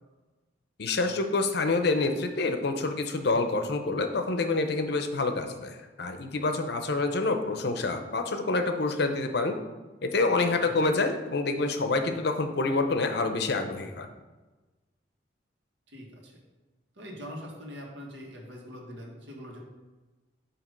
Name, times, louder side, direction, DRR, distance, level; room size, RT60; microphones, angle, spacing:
voice 1, 0.8-9.6 10.0-14.1, left 3 dB, 60° left, 6 dB, 0.6 m, -27 dB
voice 2, 15.9-16.3 17.0-19.6, equal, 75° right, -1 dB, 1.5 m, -43 dB
8.4 x 2.9 x 5.2 m, 1.2 s
head